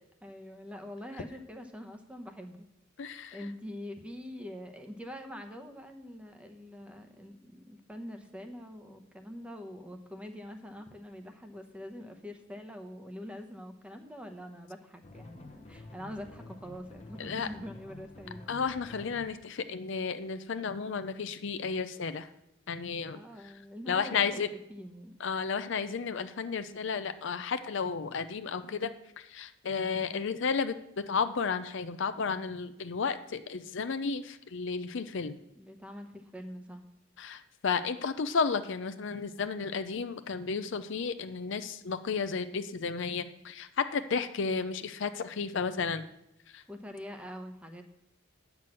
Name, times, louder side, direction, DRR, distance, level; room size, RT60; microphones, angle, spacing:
voice 1, 0.2-2.7 3.1-18.5 23.1-25.1 30.0-30.3 35.5-36.8 46.7-47.8, equal, 5° right, 5 dB, 0.9 m, -44 dB
voice 2, 3.0-3.4 17.2-17.5 18.5-22.3 22.7-23.2 23.9-24.5 25.2-28.9 29.3-35.4 37.2-46.0 46.5-46.6, left 5 dB, 65° left, 10 dB, 0.5 m, -33 dB
sound 1, 15.0-19.3, left 2 dB, 30° left, 0.9 m, -49 dB
9.3 x 6.0 x 7.5 m, 0.82 s
head